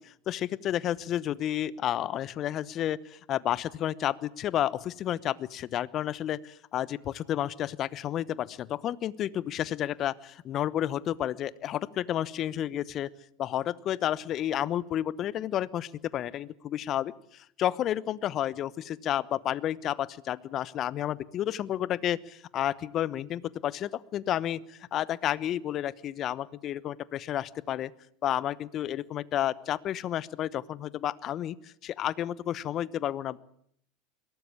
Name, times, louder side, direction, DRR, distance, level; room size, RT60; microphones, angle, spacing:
voice 1, 0.0-13.1 13.4-27.9 28.2-31.6 31.8-33.4, left 11 dB, 45° left, 20 dB, 0.9 m, -31 dB
22.0 x 17.5 x 8.6 m, 0.68 s
hypercardioid pair, 85°, 0 cm